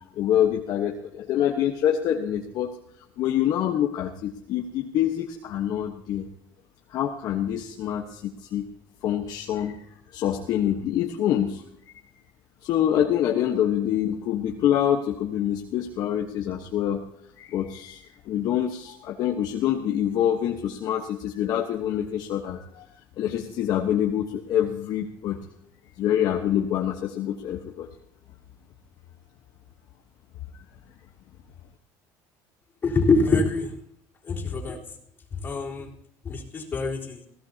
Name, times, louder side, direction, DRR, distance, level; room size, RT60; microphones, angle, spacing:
voice 1, 0.1-2.7 3.2-6.3 6.9-8.7 9.0-9.8 10.1-11.6 12.1-12.2 12.6-17.0 17.4-22.9 23.2-25.4 26.0-27.9, left 10 dB, 55° left, 2 dB, 1.2 m, -26 dB
voice 2, 32.8-33.7 34.3-34.8 35.4-35.9 36.2-37.2, left 3 dB, 25° left, -4 dB, 3.8 m, -24 dB
21.5 x 16.5 x 2.9 m, 0.71 s
cardioid pair, 140°, 8 cm